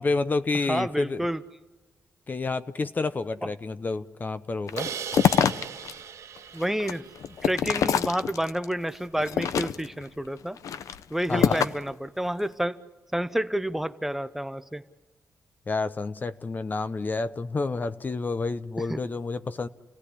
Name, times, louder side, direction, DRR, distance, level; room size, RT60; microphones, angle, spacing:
voice 1, 0.0-1.3 2.3-4.9 11.3-11.6 15.7-19.7, left 3 dB, 35° left, 12 dB, 0.8 m, -29 dB
voice 2, 0.7-1.4 6.5-7.1 7.4-10.6 11.1-12.9 13.1-14.8 18.9-19.0, right 1 dB, 5° right, 12 dB, 0.8 m, -29 dB
sound 1, 4.7-5.9 6.4-8.6 9.2-10.0 10.6-11.9, left 8 dB, 80° left, 0.8 m, -25 dB
Crash cymbal, 4.8-7.8, right 8 dB, 85° right, 2.3 m, -38 dB
29.5 x 17.0 x 9.9 m, 1.2 s
cardioid pair, 115°, 6 cm